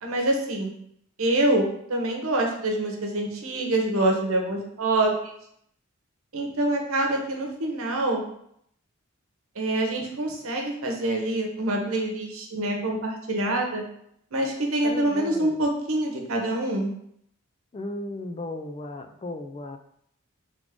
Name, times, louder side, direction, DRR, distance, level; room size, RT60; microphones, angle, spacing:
voice 1, 0.0-0.7 1.2-5.3 6.3-8.2 9.6-13.8 14.3-16.9, right 1 dB, 75° right, 1 dB, 0.9 m, -26 dB
voice 2, 14.8-15.6 17.7-19.8, left 2 dB, 25° left, 6 dB, 0.3 m, -35 dB
3.6 x 3.6 x 3.6 m, 0.71 s
head